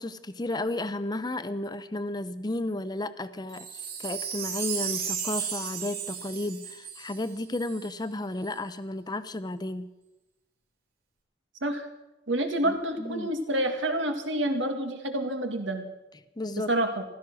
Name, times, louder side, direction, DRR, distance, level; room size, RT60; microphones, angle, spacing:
voice 1, 0.0-9.9 12.6-13.3 16.4-16.7, left 2 dB, 20° left, 13 dB, 0.7 m, -33 dB
Wind chime, 3.5-7.9 8.4-8.5, right 7 dB, 55° right, 3.3 m, -34 dB
voice 2, 12.3-15.8 16.7-17.0, right 1 dB, 80° right, 5 dB, 2.1 m, -28 dB
15.5 x 13.0 x 6.2 m, 0.99 s
head